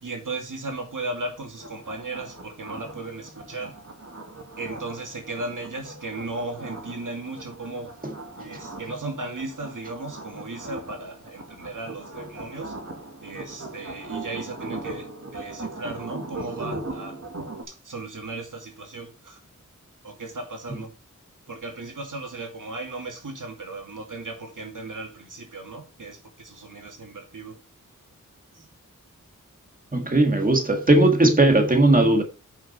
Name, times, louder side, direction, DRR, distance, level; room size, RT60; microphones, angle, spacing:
voice 1, 0.0-3.8 4.6-7.9 8.4-12.8 13.2-17.2 17.7-19.4 20.0-21.0 21.5-27.6 28.5-28.7, right 2 dB, 80° right, 2.5 m, -36 dB
sound 1, 1.6-17.6, right 2 dB, 55° right, 2.1 m, -39 dB
voice 2, 29.9-32.2, right 2 dB, 25° right, 1.8 m, -18 dB
8.9 x 6.0 x 4.3 m
wide cardioid pair, 75°, 31 cm